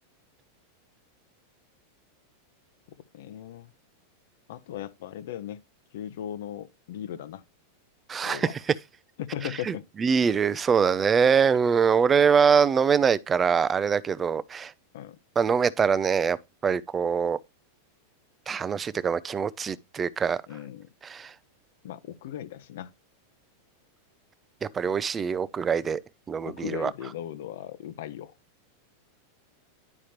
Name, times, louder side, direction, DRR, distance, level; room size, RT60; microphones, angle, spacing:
voice 1, 3.1-3.7 4.5-5.6 5.9-7.4 8.2-8.5 9.2-9.8 14.9-15.2 20.5-20.9 21.8-22.9 26.5-28.3, left 11 dB, 70° left, 0.8 m, -37 dB
voice 2, 8.1-8.5 9.7-14.7 15.4-16.4 16.6-17.4 18.5-20.4 21.0-21.3 24.6-26.0 26.3-26.9, right 6 dB, 15° right, 0.4 m, -23 dB
10.5 x 4.9 x 2.9 m
supercardioid pair, 150°, 0 cm